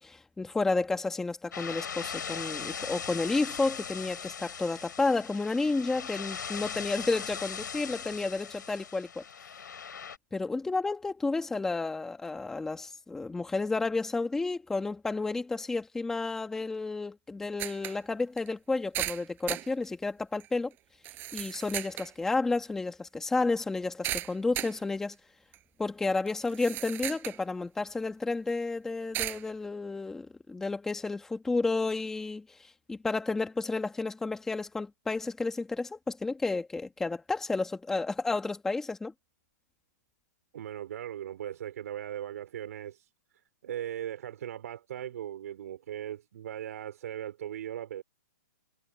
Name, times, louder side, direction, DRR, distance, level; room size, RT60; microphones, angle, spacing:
voice 1, 0.0-9.2 10.3-20.7 21.3-25.2 25.8-39.1, left 3 dB, 5° left, 1.6 m, -31 dB
sound 1, 1.5-10.2, left 7 dB, 85° left, 5.6 m, -39 dB
sound 2, 17.6-18.0 18.4-18.5 18.9-19.7 20.4-20.5 21.0-22.1 24.0-24.8 25.5-25.6 26.3-27.4 27.9-28.0 29.1-29.4, right 15 dB, 20° right, 6.8 m, -35 dB
voice 2, 40.5-43.1 43.6-48.0, right 11 dB, 55° right, 4.9 m, -38 dB
hypercardioid pair, 160°, 10 cm